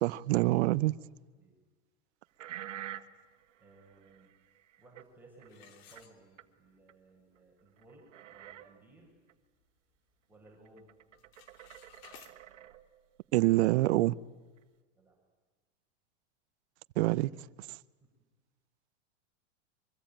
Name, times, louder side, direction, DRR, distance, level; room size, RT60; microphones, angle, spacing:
voice 1, 0.0-1.0 13.3-14.1 17.0-17.3, right 18 dB, 60° right, 1.0 m, -26 dB
sound 1, 2.4-5.0 5.4-5.5 5.9-6.0 6.4-6.5 6.9-7.0 7.4-7.5 7.7-8.8 9.3-9.4 10.5-13.2 13.8-13.9 14.6-14.7, right 12 dB, 75° right, 2.0 m, -48 dB
voice 2, 3.6-4.3 4.8-9.1 10.3-10.9 14.9-15.2, right 2 dB, 5° right, 7.1 m, -59 dB
sound 2, 5.5-6.7 7.2-7.3 7.9-8.0 8.3-8.6 9.1-10.2 10.5-10.8 11.1-12.4, left 9 dB, 55° left, 3.1 m, -58 dB
24.5 x 24.0 x 9.0 m
hypercardioid pair, 130°, 36 cm